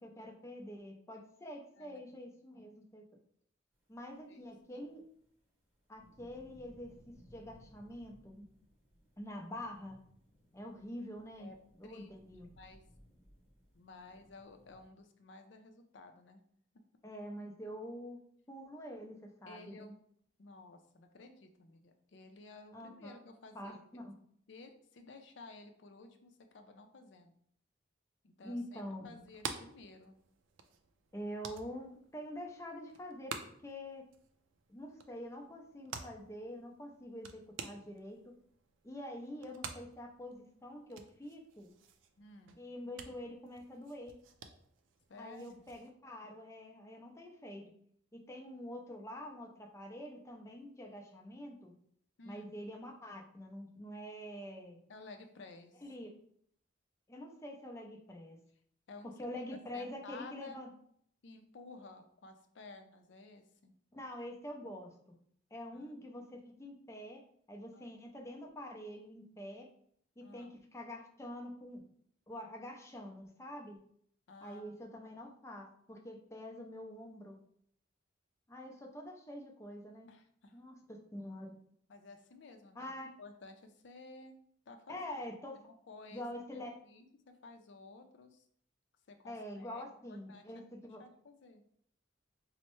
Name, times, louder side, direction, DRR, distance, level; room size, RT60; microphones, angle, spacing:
voice 1, 0.0-3.0 3.9-5.0 5.9-8.5 9.2-10.0 10.5-11.5 11.8-12.5 17.0-18.2 18.5-19.9 22.7-23.2 23.5-24.1 28.4-29.1 31.1-33.4 33.6-34.1 34.7-38.3 38.8-41.7 42.6-44.2 45.2-47.6 48.1-51.7 52.2-54.8 55.8-56.1 57.1-58.4 59.0-60.7 63.9-64.9 65.5-67.2 67.5-69.7 70.2-71.9 72.3-73.8 74.4-77.4 78.5-80.1 80.5-81.6 82.7-83.1 84.9-85.6 86.1-86.8 89.2-91.0, left 1 dB, 15° left, 1 dB, 0.4 m, -46 dB
voice 2, 1.8-2.2 4.3-4.4 4.7-4.9 11.4-11.6 11.8-12.1 12.6-12.8 13.7-16.4 19.5-19.9 20.4-23.8 24.5-27.4 28.2-30.2 42.2-42.6 45.1-45.7 52.2-52.6 54.9-55.8 58.9-59.1 59.7-60.6 61.2-63.7 65.7-66.0 67.7-68.0 70.2-70.6 74.3-75.0 80.1-80.6 81.9-82.9 83.2-84.4 84.7-85.0 85.5-86.2 86.5-88.5 89.1-90.7 91.0-91.6, left 3 dB, 70° left, 6 dB, 0.5 m, -54 dB
sound 1, 4.4-14.9, equal, 10° right, 0.8 m, -63 dB
sound 2, 29.1-45.9, right 6 dB, 85° right, 0.4 m, -50 dB
4.3 x 2.0 x 3.0 m, 0.65 s
head